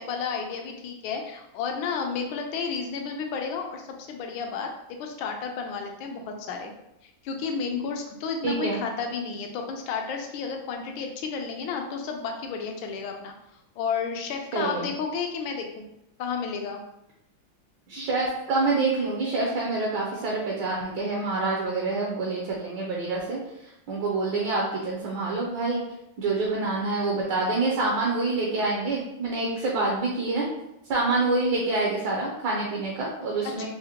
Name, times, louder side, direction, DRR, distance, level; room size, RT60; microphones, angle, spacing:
voice 1, 0.0-6.7 7.0-13.3 13.8-15.9 16.2-16.8 33.4-33.6, left 5 dB, 80° left, 3 dB, 1.3 m, -32 dB
voice 2, 8.4-8.8 14.5-14.9 17.9-23.4 23.9-25.8 26.2-30.5 30.9-33.6, right 3 dB, 70° right, -3 dB, 1.3 m, -26 dB
4.8 x 2.1 x 2.8 m, 0.86 s
omnidirectional pair, 2.2 m